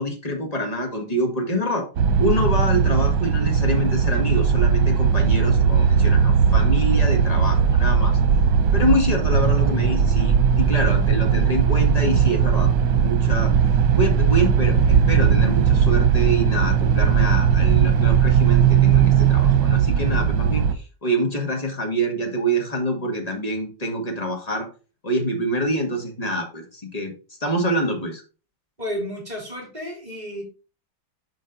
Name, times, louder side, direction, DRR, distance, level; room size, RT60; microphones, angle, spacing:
voice 1, 0.0-1.9 2.2-8.2 8.7-13.5 13.9-24.7 25.0-27.1 27.4-28.2, right 1 dB, 25° left, 3 dB, 1.7 m, -26 dB
sound 1, 2.0-20.8, right 7 dB, 90° right, 1.5 m, -18 dB
voice 2, 28.8-30.4, equal, 25° right, -2 dB, 3.3 m, -32 dB
7.4 x 5.2 x 4.0 m, 0.35 s
omnidirectional pair, 1.9 m